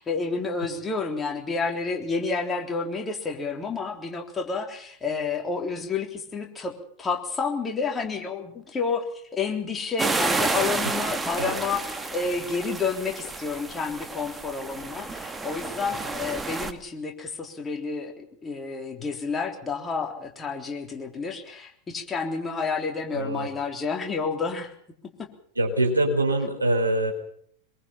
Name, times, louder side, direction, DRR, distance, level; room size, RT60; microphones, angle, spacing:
voice 1, 0.0-6.7 7.0-24.7 25.2-25.3, left 4 dB, 15° left, 2 dB, 3.6 m, -30 dB
sound 1, 10.0-16.7, right 3 dB, 10° right, 1.7 m, -30 dB
voice 2, 23.1-23.5 25.6-27.1, right 1 dB, 80° right, 3 dB, 4.5 m, -24 dB
24.0 x 22.5 x 5.8 m, 0.64 s
figure-of-eight pair, 90°, 0 cm